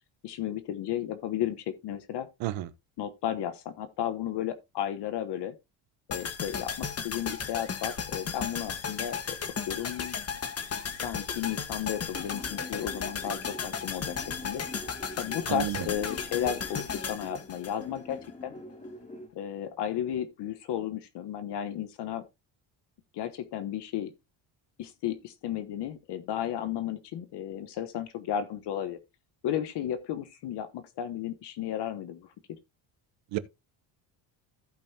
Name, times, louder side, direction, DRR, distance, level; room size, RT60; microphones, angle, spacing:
voice 1, 0.2-2.3 3.0-5.5 6.1-9.4 9.7-10.2 11.0-14.2 14.4-14.6 15.2-18.5 19.3-22.3 23.1-24.1 24.8-29.0 29.4-32.3, left 10 dB, 60° left, 1.2 m, -33 dB
voice 2, 2.4-2.7 15.5-15.8 33.3-33.4, right 14 dB, 75° right, 1.0 m, -30 dB
sound 1, 6.1-18.3 18.6-18.7, left 6 dB, 30° left, 1.5 m, -35 dB
sound 2, 12.0-19.3, left 1 dB, 15° left, 2.9 m, -45 dB
15.5 x 5.4 x 2.8 m
cardioid pair, 110°, 46 cm